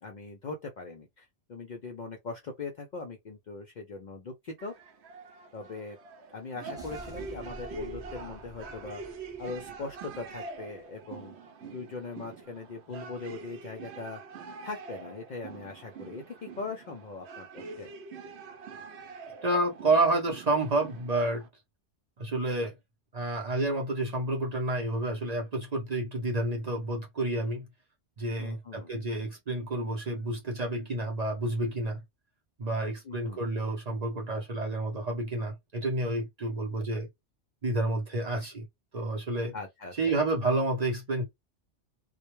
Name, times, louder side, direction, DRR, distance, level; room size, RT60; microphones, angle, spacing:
voice 1, 0.0-4.7 5.5-6.0 6.3-9.0 9.4-11.4 11.6-14.2 14.6-17.9 28.4-28.9 33.0-33.5 39.5-40.2, left 3 dB, 60° left, 0.5 m, -40 dB
sound 1, 4.6-21.5, right 4 dB, 70° right, 0.8 m, -45 dB
sound 2, 6.8-10.8, right 1 dB, 5° right, 0.6 m, -49 dB
voice 2, 19.4-21.5 22.2-22.8 23.1-27.7 28.2-32.0 32.6-37.1 37.6-38.7 38.9-39.5 39.9-41.2, right 2 dB, 45° right, 0.6 m, -29 dB
2.1 x 2.1 x 3.0 m
omnidirectional pair, 1.2 m